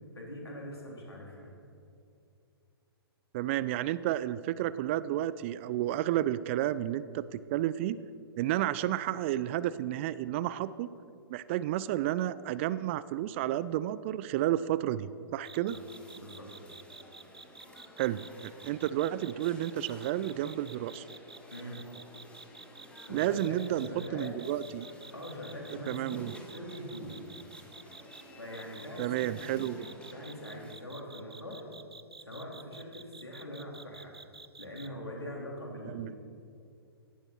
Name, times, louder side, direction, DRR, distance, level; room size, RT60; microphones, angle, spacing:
voice 1, 0.1-1.5 15.7-15.8 16.2-16.5 21.5-21.8 23.1-24.4 25.1-27.3 28.4-29.8 30.1-31.7 32.3-34.2 34.6-36.1, equal, 80° left, -2 dB, 3.9 m, -42 dB
voice 2, 3.3-8.0 8.4-10.9 11.3-15.8 18.0-21.1 23.1-24.9 25.9-26.3 29.0-29.8 35.8-36.1, right 13 dB, 30° right, 16 dB, 0.4 m, -31 dB
sound 1, 15.4-28.2 28.5-34.9, right 4 dB, 80° right, 0.6 m, -50 dB
sound 2, 15.7-30.8, left 1 dB, 10° left, 1.9 m, -53 dB
17.5 x 11.5 x 4.5 m, 2.5 s
figure-of-eight pair, 115°, 13 cm